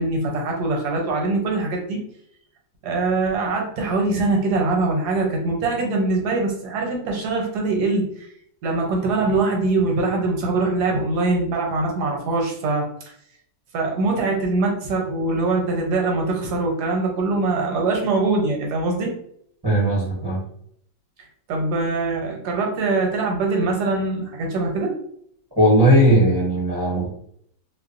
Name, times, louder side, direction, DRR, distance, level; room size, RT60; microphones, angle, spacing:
voice 1, 0.0-2.0 2.8-8.3 8.6-12.9 13.7-19.1 21.5-25.0, right 3 dB, 70° right, 1 dB, 1.2 m, -23 dB
voice 2, 19.6-20.4 25.6-27.1, equal, 25° right, -7 dB, 0.5 m, -17 dB
2.9 x 2.1 x 2.4 m, 0.68 s
omnidirectional pair, 1.9 m